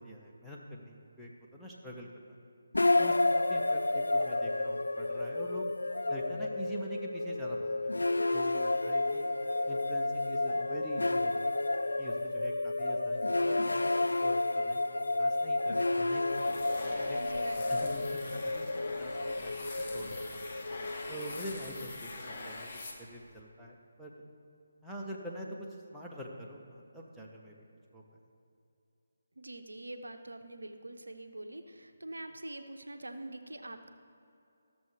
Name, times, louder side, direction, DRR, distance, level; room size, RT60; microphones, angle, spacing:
voice 1, 0.0-2.4 3.0-5.7 6.1-9.3 9.7-11.5 12.0-16.4 16.8-17.2 17.7-20.4 21.1-22.7 23.0-24.1 24.8-27.5 27.9-28.0, equal, ahead, -6 dB, 0.8 m, -45 dB
sound 1, 2.7-21.9, left 2 dB, 70° left, 0.4 m, -31 dB
sound 2, 16.3-23.4, left 2 dB, 35° left, 1.0 m, -44 dB
voice 2, 16.7-17.9 29.4-33.9, right 1 dB, 70° right, 7 dB, 0.7 m, -45 dB
13.5 x 6.8 x 3.3 m, 2.6 s
figure-of-eight pair, 150°, 0 cm